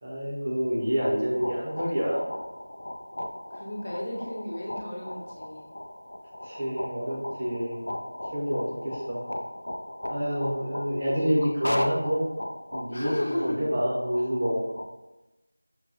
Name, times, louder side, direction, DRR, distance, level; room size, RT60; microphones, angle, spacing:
voice 1, 0.0-2.2 6.4-7.8 8.3-9.2 10.1-12.3 12.7-14.6, equal, 25° right, -5 dB, 0.7 m, -28 dB
sound 1, 0.8-14.9, left 1 dB, 70° left, 0.4 m, -37 dB
voice 2, 3.5-5.7 12.9-13.6, left 1 dB, 50° left, -2 dB, 0.8 m, -33 dB
6.0 x 2.2 x 2.6 m, 1.0 s
figure-of-eight pair, 175°, 0 cm